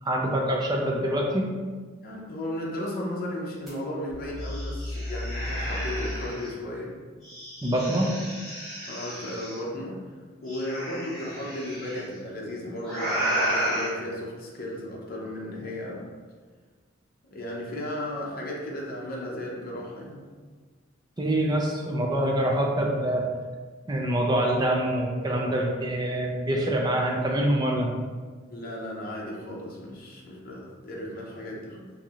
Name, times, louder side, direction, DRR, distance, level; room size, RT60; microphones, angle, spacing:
voice 1, 0.0-1.5 7.6-8.1 21.2-23.2 23.9-27.9, right 1 dB, 20° right, 0 dB, 0.4 m, -25 dB
voice 2, 2.0-7.0 8.9-10.1 10.4-16.1 17.3-20.2 28.5-31.9, left 1 dB, 45° left, -3 dB, 0.7 m, -35 dB
sound 1, 3.7-3.8 4.1-6.5 7.2-9.6 10.5-12.0 12.8-13.9, equal, ahead, 1.5 m, -32 dB
4.5 x 2.7 x 2.4 m, 1.5 s
head